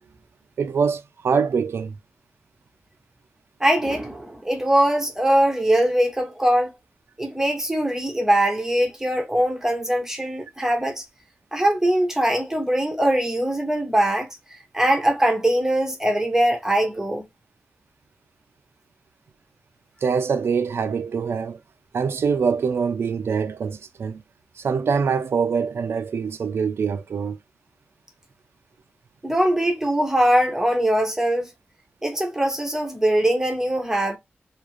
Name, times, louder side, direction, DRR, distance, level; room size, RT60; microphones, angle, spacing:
voice 1, 0.6-2.0 20.0-21.6 21.9-24.2 24.6-27.4, right 6 dB, 85° right, 0.4 m, -24 dB
voice 2, 3.6-6.7 7.2-11.0 11.5-14.3 14.7-17.3 29.2-31.5 32.0-34.2, right 1 dB, 10° right, 0.7 m, -21 dB
2.5 x 2.4 x 3.0 m
wide cardioid pair, 125°, 4 cm